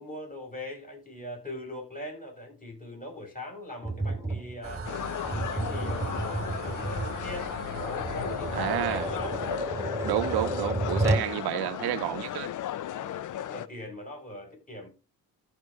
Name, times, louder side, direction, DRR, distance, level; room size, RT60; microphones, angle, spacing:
voice 1, 0.0-4.9 5.3-7.5 7.8-9.4 12.9-14.9, left 1 dB, 20° left, 6.0 m, -41 dB
Tap, 3.8-11.3, right 1 dB, 10° right, 2.2 m, -32 dB
sound 1, 4.6-9.6, right 5 dB, 35° right, 1.2 m, -41 dB
sound 2, 4.8-13.7, left 11 dB, 55° left, 0.6 m, -35 dB
voice 2, 8.5-9.1 10.0-12.5, right 16 dB, 80° right, 0.6 m, -30 dB
14.0 x 5.2 x 3.5 m
cardioid pair, 75°, 38 cm